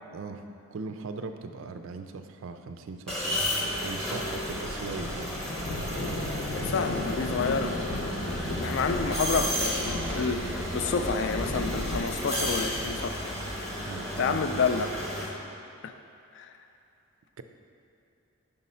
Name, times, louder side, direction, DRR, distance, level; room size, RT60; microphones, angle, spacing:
voice 1, 0.1-0.4 0.7-3.5 3.8-5.3 13.9-14.7 17.4-17.5, right 4 dB, 60° right, 8 dB, 0.4 m, -39 dB
sound 1, 3.1-15.3, equal, 5° left, 0.8 m, -33 dB
sound 2, 4.3-13.1, left 1 dB, 80° left, 1.0 m, -35 dB
voice 2, 6.5-8.2 8.6-13.4 13.8-13.9 14.2-14.9 15.2-15.4 15.8-15.9 16.4-16.5, left 5 dB, 55° left, 8 dB, 0.3 m, -29 dB
5.5 x 4.1 x 5.4 m, 2.7 s
head